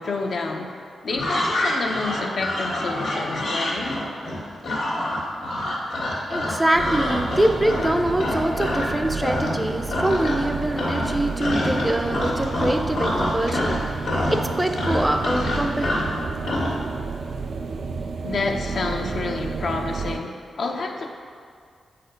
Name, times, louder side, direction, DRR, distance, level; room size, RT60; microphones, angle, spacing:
voice 1, 0.0-4.0 18.2-21.1, left 3 dB, 65° left, 2 dB, 0.7 m, -29 dB
sound 1, 1.1-8.9 9.2-9.6 9.9-10.5 10.8-16.7, left 1 dB, 90° left, 1.8 m, -26 dB
voice 2, 6.3-13.8 14.3-16.0, right 1 dB, 15° right, 5 dB, 0.5 m, -24 dB
sound 2, 6.7-20.2, right 4 dB, 65° right, 0.4 m, -31 dB
7.6 x 4.2 x 5.2 m, 2.1 s
cardioid pair, 80°, 0 cm